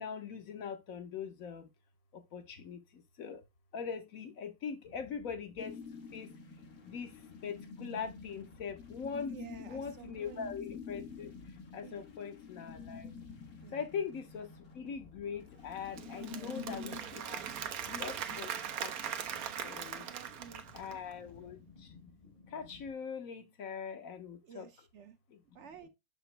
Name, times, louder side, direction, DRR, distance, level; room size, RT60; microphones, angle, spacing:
voice 1, 0.0-1.7 2.1-3.4 3.7-5.8 6.1-6.3 6.8-7.1 7.4-13.2 13.7-17.5 17.9-20.1 20.7-22.1 22.5-24.7 25.3-25.4 25.8-25.9, left 6 dB, 70° left, 1.3 m, -42 dB
sound 1, 4.8-22.9, left 4 dB, 40° left, 0.9 m, -59 dB
sound 2, 5.6-17.0, left 5 dB, 90° left, 1.9 m, -48 dB
voice 2, 9.3-10.5 11.8-12.1 13.6-13.8 16.2-16.6 19.9-21.0 24.4-25.2 25.5-25.9, right 8 dB, 60° right, 0.9 m, -52 dB
Applause / Crowd, 15.7-21.1, right 8 dB, 80° right, 1.2 m, -40 dB
6.6 x 5.0 x 3.2 m
omnidirectional pair, 1.5 m